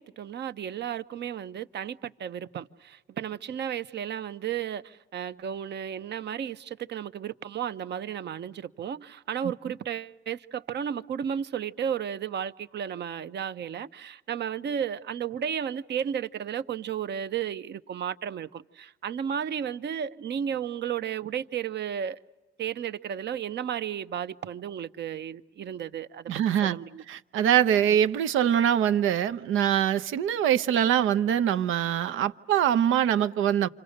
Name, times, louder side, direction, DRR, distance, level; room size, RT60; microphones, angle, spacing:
voice 1, 0.0-22.2 22.6-26.3 26.6-27.0, right 8 dB, 60° right, 0.9 m, -33 dB
voice 2, 26.3-26.8 27.1-33.7, right 10 dB, 90° right, 0.9 m, -23 dB
28.5 x 26.0 x 6.6 m
cardioid pair, 90°, 20 cm